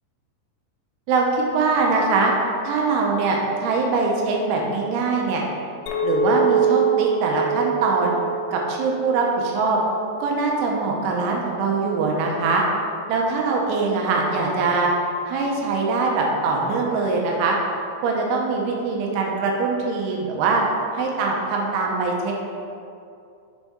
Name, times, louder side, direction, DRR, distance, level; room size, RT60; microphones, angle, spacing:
voice 1, 1.1-2.3 2.6-5.4 6.0-8.2 8.5-9.8 10.2-12.6 13.1-14.9 15.3-17.6 18.0-20.6 20.9-22.3, right 4 dB, 80° right, -1 dB, 3.0 m, -22 dB
Chink clink, 5.9-10.4, right 5 dB, 85° left, 3.1 m, -24 dB
7.0 x 4.1 x 3.5 m, 2.5 s
omnidirectional pair, 5.5 m